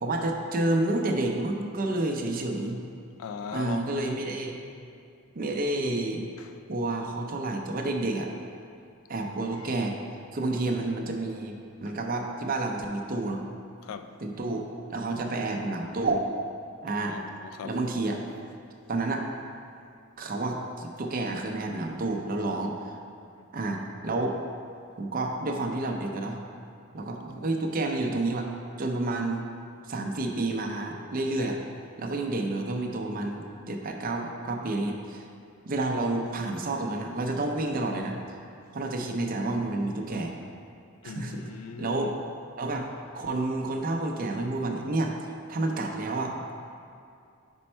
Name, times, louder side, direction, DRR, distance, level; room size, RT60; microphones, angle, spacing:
voice 1, 0.0-2.8 3.5-4.6 5.4-6.3 6.7-8.3 9.1-10.0 10.3-13.5 14.2-16.2 16.8-17.2 17.6-18.2 18.9-19.2 20.2-23.0 23.5-24.4 25.0-26.4 26.9-28.5 28.8-29.4 29.9-31.6 32.0-35.3 35.7-38.2 38.7-40.3 41.0-41.5 41.8-42.1 42.6-42.9 43.1-45.1 45.5-46.3, right 2 dB, 45° right, 2 dB, 0.5 m, -29 dB
voice 2, 3.2-4.2 13.8-14.2 17.1-17.7 41.0-42.1, left 6 dB, 90° left, 9 dB, 0.3 m, -39 dB
5.3 x 4.4 x 4.3 m, 2.5 s
head